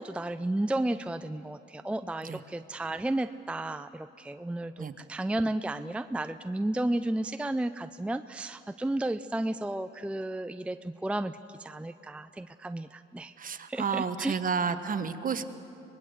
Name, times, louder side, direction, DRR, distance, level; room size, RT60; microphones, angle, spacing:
voice 1, 0.0-13.3 13.7-14.4, right 1 dB, 5° right, 11 dB, 0.5 m, -33 dB
voice 2, 13.4-15.4, right 6 dB, 45° right, 10 dB, 1.3 m, -31 dB
24.5 x 20.0 x 7.9 m, 2.8 s
cardioid pair, 90°, 20 cm